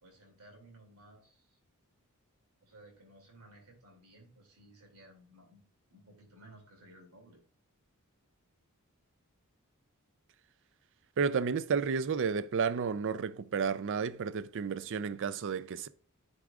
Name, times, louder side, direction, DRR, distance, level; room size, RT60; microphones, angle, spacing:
voice 1, 0.0-1.6 2.6-5.6 5.9-7.4, right 1 dB, 80° right, 2.6 m, -57 dB
voice 2, 11.2-15.9, right 5 dB, 60° right, 0.4 m, -32 dB
9.7 x 4.8 x 2.4 m
head